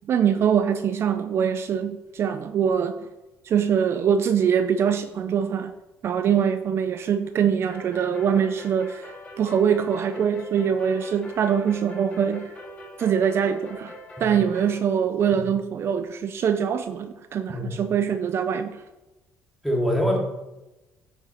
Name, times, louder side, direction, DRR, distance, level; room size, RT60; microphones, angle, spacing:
voice 1, 0.1-2.9 3.4-5.7 6.0-12.4 13.0-13.9 14.2-18.8, right 8 dB, 50° right, 9 dB, 0.6 m, -23 dB
sound 1, 7.7-14.8, left 1 dB, 25° left, 2.8 m, -42 dB
voice 2, 19.6-20.2, equal, ahead, -1 dB, 2.6 m, -24 dB
9.7 x 6.3 x 4.5 m, 1.0 s
cardioid pair, 100°, 5 cm